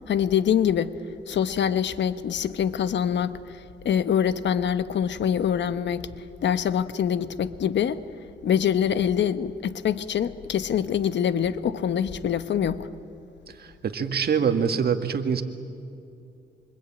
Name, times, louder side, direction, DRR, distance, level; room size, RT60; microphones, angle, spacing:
voice 1, 0.1-0.9 1.3-6.1 6.4-8.0 8.4-12.9, left 8 dB, 65° left, 1.1 m, -25 dB
voice 2, 13.5-15.4, right 6 dB, 55° right, 1.9 m, -25 dB
26.0 x 25.0 x 8.9 m
cardioid pair, 85°, 20 cm